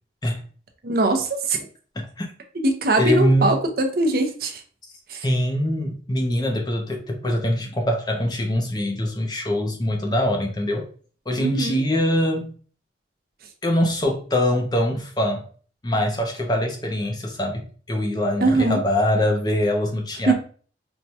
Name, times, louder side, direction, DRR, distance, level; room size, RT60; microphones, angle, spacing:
voice 1, 0.8-1.6 2.6-4.6 5.1-5.2 11.4-11.8 18.4-18.8 20.3-20.4, right 2 dB, 55° right, 0.6 m, -21 dB
voice 2, 3.0-3.5 5.2-10.9 11.3-12.5 13.6-15.4 15.8-20.3, left 1 dB, 20° left, 0.5 m, -23 dB
4.4 x 2.2 x 2.7 m
head